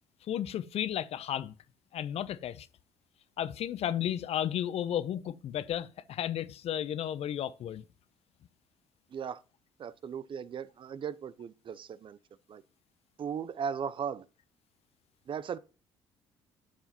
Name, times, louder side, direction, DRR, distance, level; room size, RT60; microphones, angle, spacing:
voice 1, 0.3-1.5 1.9-2.7 3.4-7.8, left 10 dB, 55° left, 0.6 m, -33 dB
voice 2, 9.8-12.2 12.5-12.6 13.2-14.2 15.3-15.6, right 7 dB, 45° right, 0.5 m, -37 dB
11.0 x 5.7 x 2.9 m
hypercardioid pair, 55°, 12 cm